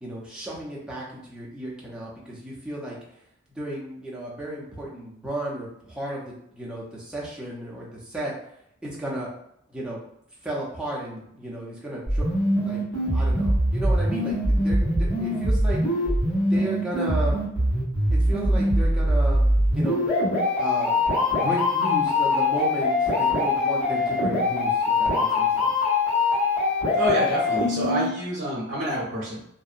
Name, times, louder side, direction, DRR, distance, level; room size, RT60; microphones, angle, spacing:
voice 1, 0.0-3.0 3.5-8.3 8.8-9.3 9.7-10.0 10.4-12.8 13.1-16.1 16.4-17.4 18.1-19.4 19.7-20.1 20.6-21.0 21.4-25.7, right 1 dB, 5° right, -6 dB, 0.5 m, -34 dB
sound 1, 12.1-28.1, left 1 dB, 80° left, 1.3 m, -23 dB
voice 2, 27.0-29.5, left 1 dB, 55° right, -6 dB, 0.7 m, -27 dB
2.6 x 2.0 x 2.4 m, 0.74 s
head